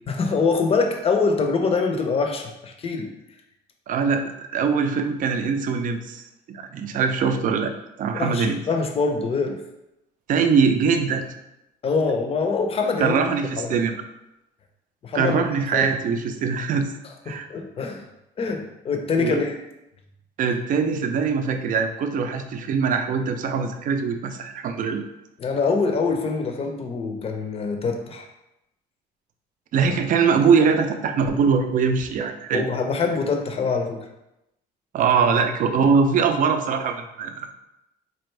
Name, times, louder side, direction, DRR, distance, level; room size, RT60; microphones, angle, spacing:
voice 1, 0.1-3.1 8.1-9.6 11.8-13.2 13.6-13.8 15.0-15.4 15.7-15.9 17.3-18.0 18.4-19.6 25.4-28.3 32.5-34.1, left 4 dB, 35° left, 4 dB, 0.6 m, -24 dB
voice 2, 3.9-7.7 8.0-8.6 10.3-11.3 13.0-14.0 15.1-16.9 17.3-17.5 19.2-19.4 20.4-25.1 29.7-32.6 34.9-37.5, right 5 dB, 50° right, 6 dB, 0.5 m, -22 dB
4.3 x 2.5 x 3.2 m, 0.88 s
cardioid pair, 110°, 17 cm